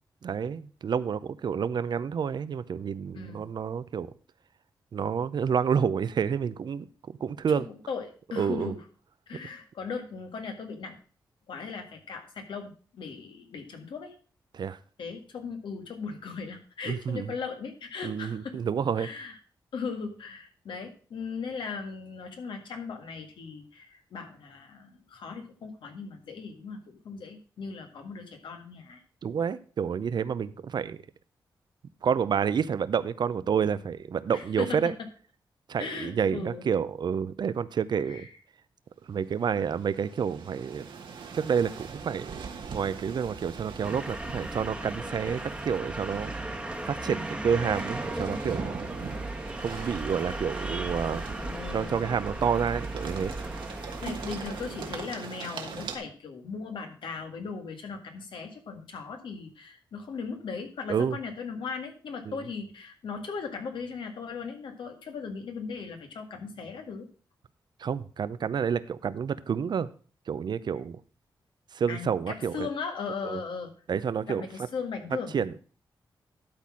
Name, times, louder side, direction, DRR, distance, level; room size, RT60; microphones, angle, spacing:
voice 1, 0.2-4.1 4.9-6.9 7.2-7.7 8.3-8.7 14.5-14.8 16.9-17.3 18.0-19.1 29.2-31.0 32.0-34.9 35.7-38.3 39.1-40.9 41.3-42.4 42.7-46.3 46.9-48.7 49.6-51.4 51.7-53.3 60.9-61.2 62.3-62.4 67.8-69.9 70.3-71.0 71.7-72.7 73.2-73.4 73.9-74.5 75.3-75.6, right 7 dB, 65° right, 16 dB, 0.6 m, -29 dB
voice 2, 3.1-3.5 7.5-8.8 9.3-11.0 11.5-14.2 15.0-18.6 19.0-19.4 19.7-29.0 34.3-35.1 35.8-36.7 38.1-38.3 51.4-52.1 54.0-67.1 71.9-73.7 74.3-75.5, left 5 dB, 85° left, 5 dB, 1.8 m, -38 dB
sound 1, 39.1-56.0, right 5 dB, 80° right, 1.4 m, -42 dB
sound 2, 43.8-55.1, right 1 dB, 10° right, 1.2 m, -36 dB
12.0 x 4.2 x 6.1 m, 0.40 s
cardioid pair, 85°, 8 cm